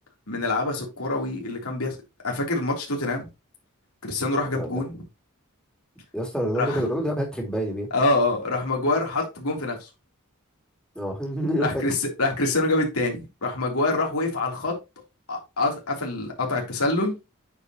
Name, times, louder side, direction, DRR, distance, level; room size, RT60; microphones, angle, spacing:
voice 1, 0.3-1.9 2.2-3.2 4.0-4.9 6.5-6.8 7.9-9.8 11.6-14.7 15.3-17.1, left 2 dB, 90° left, 3.4 m, -25 dB
voice 2, 6.1-7.9 10.9-11.8, equal, 5° left, 2.7 m, -27 dB
9.4 x 5.2 x 3.0 m
head